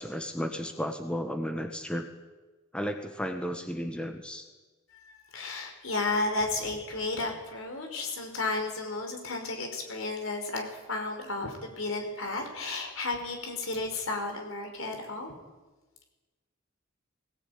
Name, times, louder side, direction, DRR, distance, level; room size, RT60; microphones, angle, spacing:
voice 1, 0.0-2.1 2.7-4.4, equal, 5° left, 5 dB, 1.5 m, -33 dB
voice 2, 4.9-15.3, left 2 dB, 70° left, 4 dB, 5.2 m, -33 dB
19.5 x 19.0 x 9.5 m, 1.2 s
head